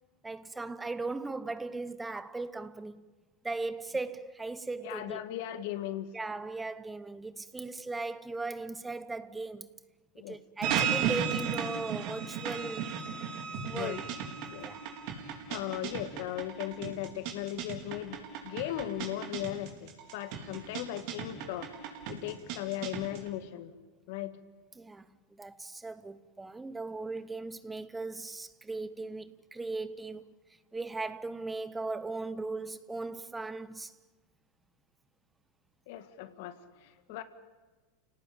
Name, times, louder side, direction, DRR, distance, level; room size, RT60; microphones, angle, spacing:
voice 1, 0.2-3.0 3.4-5.2 6.1-9.7 10.3-12.9 13.7-14.0 14.6-14.8 24.8-25.1 25.3-30.2 30.7-33.9, right 3 dB, 10° right, 0.9 m, -38 dB
voice 2, 4.8-6.1 10.2-10.4 13.7-14.0 14.5-14.7 15.5-18.2 18.4-21.7 22.1-23.7 24.1-24.4 35.9-37.2, left 13 dB, 65° left, 2.0 m, -37 dB
sound 1, 10.6-23.3, right 7 dB, 60° right, 4.5 m, -35 dB
29.5 x 18.0 x 8.9 m
hypercardioid pair, 100°, 0 cm